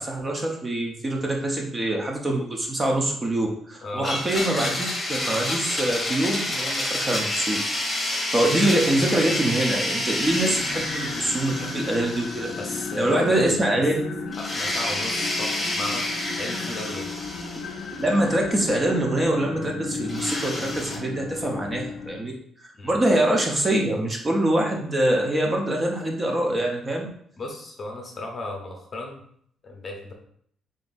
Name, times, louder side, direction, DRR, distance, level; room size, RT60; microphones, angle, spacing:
voice 1, 0.0-7.6 7.9-8.0 8.3-12.5 13.0-14.2 18.0-22.3 22.6-27.1, right 1 dB, 20° right, 0 dB, 0.6 m, -24 dB
voice 2, 3.8-4.1 12.6-13.7 14.4-16.1 16.4-17.1 22.7-23.0 27.4-29.2 29.6-30.1, left 2 dB, 30° left, 2 dB, 0.7 m, -35 dB
Domestic sounds home sounds, 4.0-13.2 13.5-13.6 14.3-18.3 20.1-21.0, left 1 dB, 15° left, 1.1 m, -29 dB
sound 1, 10.2-22.2, left 5 dB, 65° left, 0.5 m, -35 dB
sound 2, 12.4-21.0, right 6 dB, 65° right, 0.5 m, -46 dB
3.9 x 3.7 x 2.6 m, 0.64 s
cardioid pair, 160°, 0 cm